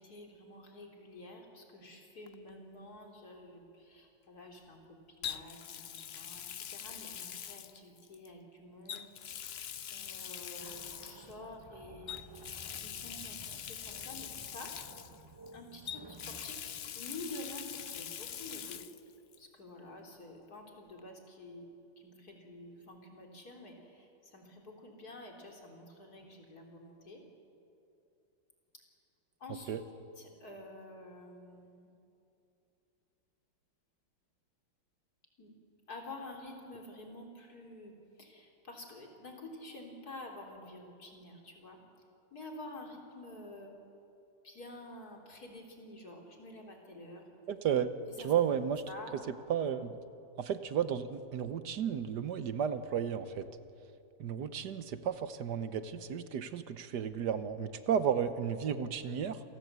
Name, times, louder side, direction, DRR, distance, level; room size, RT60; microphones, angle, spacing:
voice 1, 0.0-6.5 6.7-9.1 9.9-14.7 15.5-16.7 17.0-18.8 19.4-21.7 22.0-27.2 29.4-29.7 30.2-31.9 35.4-35.5 35.9-41.8 42.3-43.7 44.4-47.3 48.2-48.4 48.9-49.1, left 2 dB, 55° left, 1 dB, 3.9 m, -49 dB
Water tap faucet, 2.3-2.5 5.2-8.3 8.9-11.3 12.1-15.5 15.9-19.0 19.3-19.4 21.0-21.1, left 9 dB, 80° left, 0.5 m, -43 dB
sound 1, 10.6-18.0, right 2 dB, 20° right, 0.7 m, -55 dB
voice 2, 47.5-47.9 48.2-48.8 49.3-50.0 50.4-53.5 54.2-59.4, right 8 dB, 65° right, 11 dB, 1.5 m, -33 dB
28.0 x 18.0 x 8.2 m, 2.7 s
omnidirectional pair, 2.0 m